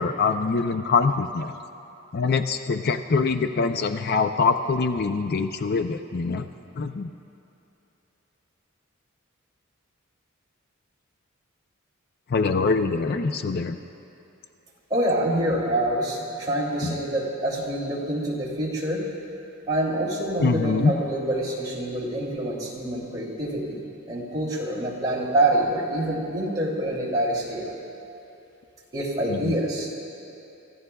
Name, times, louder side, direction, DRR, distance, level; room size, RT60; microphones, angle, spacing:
voice 1, 0.0-1.5 2.1-6.5 6.8-7.1 12.3-13.8 16.8-17.0 20.4-20.9 29.3-29.6, left 4 dB, 50° left, 8 dB, 0.5 m, -24 dB
voice 2, 14.9-19.0 19.7-27.7 28.9-29.9, right 1 dB, 20° right, -6 dB, 2.8 m, -26 dB
29.5 x 15.0 x 2.3 m, 2.9 s
head